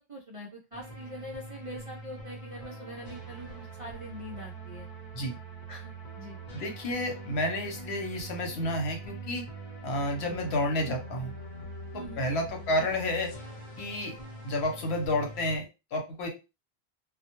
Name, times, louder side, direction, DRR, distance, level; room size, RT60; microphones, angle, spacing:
voice 1, 0.1-4.9 5.7-6.4 11.9-12.2, equal, 50° right, -1 dB, 0.4 m, -43 dB
sound 1, 0.7-15.6, right 2 dB, 50° left, 0.9 m, -43 dB
voice 2, 6.5-9.4 9.8-11.3 11.9-13.3 13.8-14.1 14.4-15.7 15.9-16.3, left 1 dB, 75° left, 3 dB, 1.0 m, -30 dB
2.2 x 2.0 x 2.8 m, 0.28 s
omnidirectional pair, 1.1 m